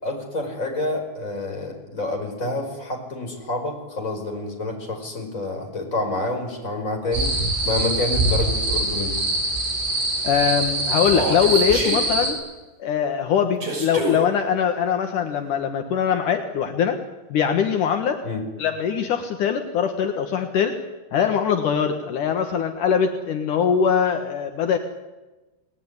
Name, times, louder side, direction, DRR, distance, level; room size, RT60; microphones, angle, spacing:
voice 1, 0.0-9.2 18.2-18.4, left 2 dB, 15° left, 2 dB, 5.1 m, -28 dB
sound 1, 7.1-12.3, right 2 dB, 80° right, 9.7 m, -24 dB
voice 2, 10.2-12.4 12.8-17.0 17.3-18.2 18.6-20.8 21.1-24.8, left 7 dB, 70° left, 5 dB, 1.9 m, -22 dB
Human voice, 11.0-12.0 13.6-14.2, right 2 dB, 30° right, 7.4 m, -27 dB
30.0 x 19.5 x 9.8 m, 1.1 s
omnidirectional pair, 5.9 m